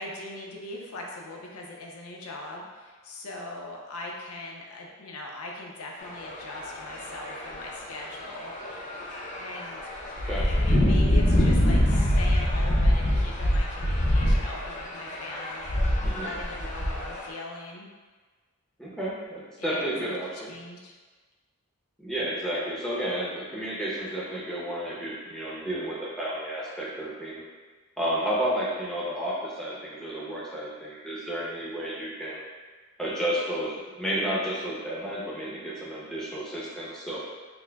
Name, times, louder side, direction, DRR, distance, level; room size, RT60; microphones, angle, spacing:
voice 1, 0.0-9.0 9.4-9.8 10.3-17.9 19.6-20.1 20.5-20.9, left 2 dB, 85° left, -1 dB, 0.6 m, -40 dB
sound 1, 6.0-17.3, equal, 35° left, 0.5 m, -25 dB
voice 2, 16.0-16.3 18.8-20.5 22.0-27.4 28.0-32.4 33.0-37.2, right 1 dB, 5° left, -8 dB, 0.7 m, -31 dB
5.8 x 2.1 x 2.2 m, 1.4 s
head